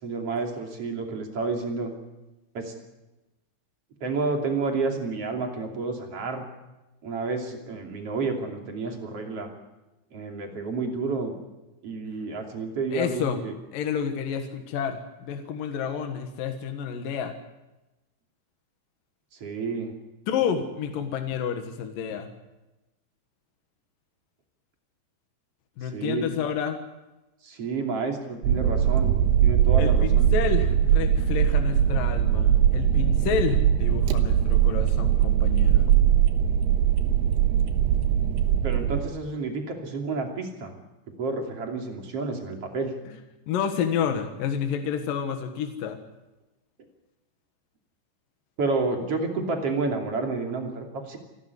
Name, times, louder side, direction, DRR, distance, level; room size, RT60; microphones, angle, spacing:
voice 1, 0.0-1.9 2.5-2.7 4.0-6.4 7.0-9.5 10.1-11.3 11.8-13.5 19.4-19.9 25.9-26.3 27.4-29.1 29.4-30.3 38.6-40.7 41.2-42.9 48.6-51.2, right 3 dB, 35° right, 3 dB, 3.2 m, -30 dB
voice 2, 12.9-13.4 13.7-17.3 20.3-22.3 25.8-26.8 29.8-36.0 43.5-46.0, left 7 dB, 60° left, 6 dB, 2.7 m, -29 dB
sound 1, 28.4-39.0, right 10 dB, 75° right, 3.1 m, -21 dB
28.0 x 12.5 x 9.7 m, 1.0 s
omnidirectional pair, 5.3 m